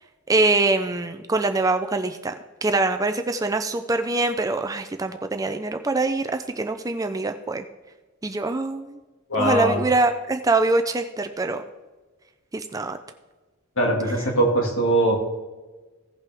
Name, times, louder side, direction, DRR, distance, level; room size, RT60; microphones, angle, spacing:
voice 1, 0.3-2.3 2.6-7.6 8.2-9.0 9.4-11.6 12.5-13.0, right 2 dB, 15° right, 7 dB, 0.4 m, -24 dB
voice 2, 9.3-9.8 13.8-15.1, right 1 dB, 60° left, 0 dB, 2.2 m, -21 dB
16.0 x 5.7 x 3.5 m, 1.2 s
head